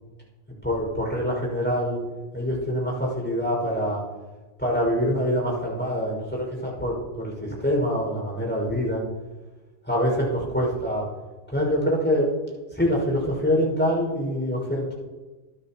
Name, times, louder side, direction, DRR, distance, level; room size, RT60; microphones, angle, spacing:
voice 1, 0.6-2.0 2.3-4.0 4.6-9.0 9.9-11.0 11.5-12.3 12.7-14.9, equal, 10° left, -3 dB, 5.9 m, -25 dB
27.5 x 10.0 x 3.1 m, 1.2 s
omnidirectional pair, 1.2 m